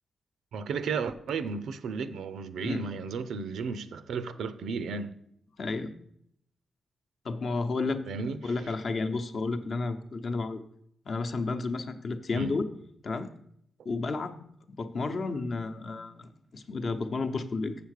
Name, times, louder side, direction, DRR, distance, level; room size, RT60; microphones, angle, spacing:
voice 1, 0.5-5.1 8.1-8.5 12.3-12.6, right 5 dB, 85° right, 0.6 m, -34 dB
voice 2, 5.6-5.9 7.2-10.6 11.1-12.6 13.0-13.3 13.8-14.4 14.8-17.8, left 3 dB, 45° left, 0.8 m, -32 dB
7.3 x 6.9 x 6.5 m
wide cardioid pair, 140°, 0 cm